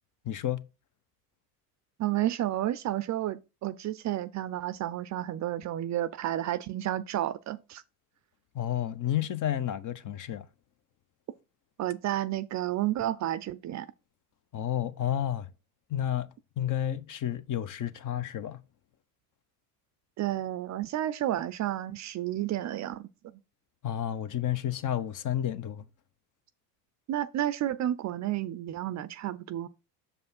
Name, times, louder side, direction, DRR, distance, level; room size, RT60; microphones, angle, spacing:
voice 1, 0.3-0.6 8.5-10.4 14.5-15.5 15.9-16.3 16.6-18.6 23.8-25.8, left 11 dB, 40° left, 0.9 m, -31 dB
voice 2, 2.0-7.8 11.8-13.9 20.2-23.1 27.1-29.7, right 13 dB, 40° right, 0.5 m, -31 dB
6.8 x 5.3 x 4.2 m
hypercardioid pair, 80°, 47 cm